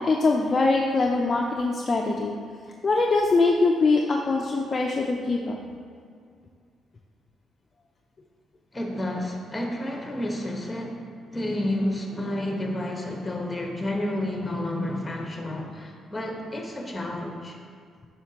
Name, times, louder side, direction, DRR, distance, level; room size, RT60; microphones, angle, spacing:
voice 1, 0.0-2.4 2.8-5.6, left 3 dB, 35° left, 0 dB, 0.5 m, -23 dB
voice 2, 8.7-17.6, left 1 dB, 15° left, 1 dB, 1.1 m, -30 dB
7.7 x 5.7 x 2.9 m, 2.2 s
cardioid pair, 90°, 0 cm